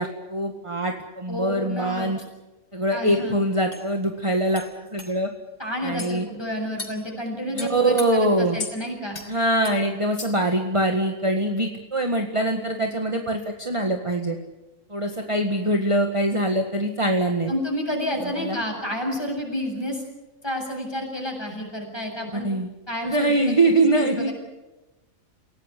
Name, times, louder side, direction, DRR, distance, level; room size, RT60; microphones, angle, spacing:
voice 1, 0.0-2.2 2.7-4.6 4.9-5.3 5.8-6.3 7.5-8.6 9.3-14.4 14.9-17.5 18.2-18.6 22.3-22.7 23.0-24.3, right 1 dB, 25° right, 3 dB, 1.8 m, -23 dB
voice 2, 1.3-2.1 2.9-3.4 5.6-9.2 17.5-20.0 20.4-22.5 22.9-24.3, equal, 20° left, 1 dB, 7.5 m, -30 dB
sound 1, 3.1-3.2 3.7-3.8 4.5-4.7 5.0-5.1 6.0-6.1 6.8-7.0 7.6-8.1 8.6-8.8 9.1-9.3 9.6-9.8 10.2-10.5, left 4 dB, 85° left, 4.2 m, -35 dB
29.0 x 17.5 x 8.4 m, 1.1 s
omnidirectional pair, 1.4 m